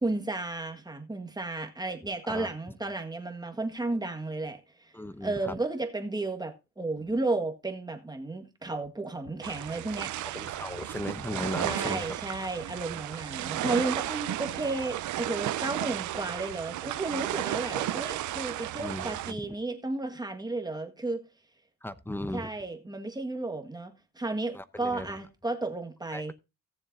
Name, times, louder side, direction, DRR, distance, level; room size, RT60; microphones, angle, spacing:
voice 1, 0.0-4.6 5.2-10.3 11.6-21.2 22.3-26.3, right 2 dB, 15° right, 1.7 m, -33 dB
voice 2, 4.9-5.5 10.3-12.1 12.9-13.0 18.8-19.4 21.8-22.5 24.5-25.2 26.1-26.3, left 1 dB, 5° left, 0.8 m, -37 dB
sound 1, 9.4-19.3, right 14 dB, 75° right, 0.7 m, -34 dB
17.5 x 7.2 x 2.7 m
cardioid pair, 90°, 30 cm